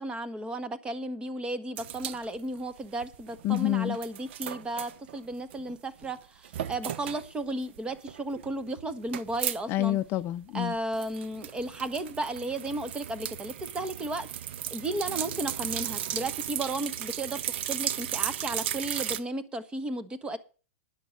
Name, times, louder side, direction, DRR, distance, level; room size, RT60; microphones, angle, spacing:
voice 1, 0.0-10.0 10.5-14.3 14.7-20.4, right 2 dB, 15° right, 1.2 m, -34 dB
sound 1, 1.8-3.7 3.9-5.7 6.0-6.1 6.4-7.3 7.7-9.6 9.9-10.0 10.2-19.2, right 11 dB, 60° right, 0.8 m, -35 dB
voice 2, 3.4-4.0 9.7-10.7, left 14 dB, 35° left, 0.5 m, -27 dB
10.0 x 6.7 x 7.5 m
hypercardioid pair, 115°, 7 cm